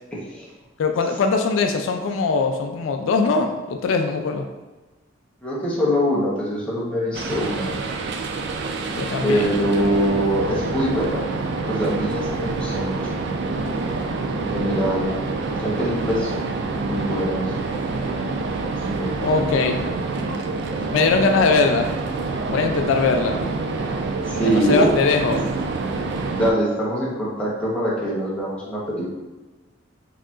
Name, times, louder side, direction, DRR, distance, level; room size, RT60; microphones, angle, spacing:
voice 1, 0.8-4.5 8.9-9.5 19.2-19.8 20.9-21.9 22.5-23.4 24.4-25.4, left 4 dB, 75° left, 4 dB, 0.3 m, -21 dB
voice 2, 5.4-7.7 9.2-11.3 11.7-13.0 14.3-15.1 15.6-16.3 16.7-17.5 18.9-19.4 20.2-20.7 24.2-24.9 25.3-25.4 26.1-29.1, equal, 5° left, -7 dB, 0.9 m, -24 dB
sound 1, 7.1-26.5, right 3 dB, 60° right, 0.4 m, -27 dB
4.7 x 2.8 x 2.4 m, 1.2 s
head